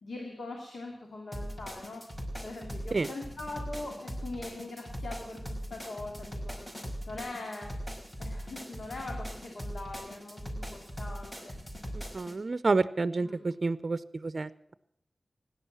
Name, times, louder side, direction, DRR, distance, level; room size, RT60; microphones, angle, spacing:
voice 1, 0.0-2.1 2.4-6.7 7.1-7.8 8.2-11.5 11.8-12.2 13.2-13.4, left 2 dB, 80° left, 1 dB, 2.5 m, -42 dB
sound 1, 1.3-12.3, equal, 15° left, 5.5 m, -40 dB
voice 2, 12.1-14.5, right 3 dB, 55° right, 15 dB, 0.6 m, -29 dB
16.5 x 11.5 x 7.2 m, 0.73 s
cardioid pair, 40°, 0 cm